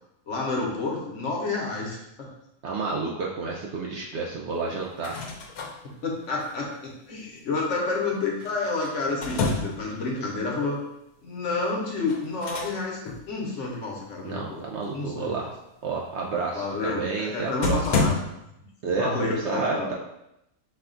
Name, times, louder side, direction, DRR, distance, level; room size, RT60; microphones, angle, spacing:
voice 1, 0.3-2.3 5.8-10.8 11.2-13.0 13.3-14.6 14.9-15.5 16.5-18.3 19.0-19.9, left 3 dB, 60° left, -2 dB, 1.1 m, -29 dB
voice 2, 2.6-5.2 14.2-15.5 15.8-17.9 18.8-19.9, right 4 dB, 65° right, -2 dB, 0.7 m, -30 dB
sound 1, 4.8-5.7 8.4-9.9 12.1-12.8 13.0-13.2 17.1-17.2 17.6-18.1, left 3 dB, 75° left, 1.1 m, -28 dB
5.5 x 2.3 x 3.8 m, 0.85 s
omnidirectional pair, 1.5 m